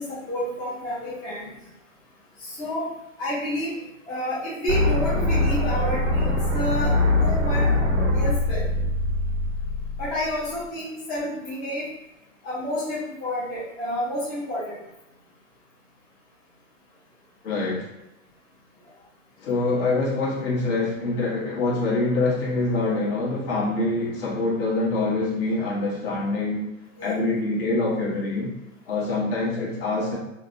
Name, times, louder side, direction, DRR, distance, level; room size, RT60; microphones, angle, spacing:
voice 1, 0.0-1.5 2.4-2.9 3.2-3.8 4.1-7.7 8.1-8.7 10.0-11.9 12.4-14.8 27.0-27.2, left 1 dB, 25° left, -8 dB, 0.7 m, -30 dB
sound 1, 4.7-10.6, left 2 dB, 65° right, 0.7 m, -23 dB
voice 2, 17.4-17.9 19.4-26.6 27.0-28.5 28.9-30.2, left 2 dB, 45° left, -5 dB, 1.1 m, -25 dB
2.9 x 2.0 x 2.6 m, 0.89 s
hypercardioid pair, 125°, 39 cm